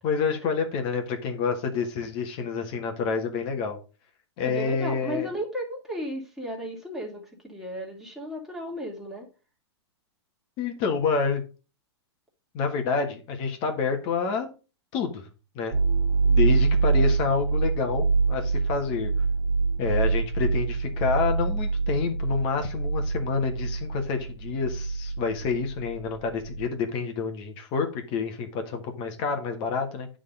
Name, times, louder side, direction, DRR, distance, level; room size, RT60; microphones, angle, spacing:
voice 1, 0.0-3.8 4.4-5.3 10.6-11.4 12.5-14.5 14.9-15.3 15.5-15.8 16.3-19.1 19.8-30.1, left 5 dB, 35° left, 5 dB, 1.4 m, -28 dB
voice 2, 4.4-9.3, equal, ahead, -2 dB, 2.3 m, -34 dB
sound 1, 15.7-26.7, right 4 dB, 45° right, 1.7 m, -25 dB
9.5 x 3.8 x 5.3 m, 0.33 s
hypercardioid pair, 140°, 14 cm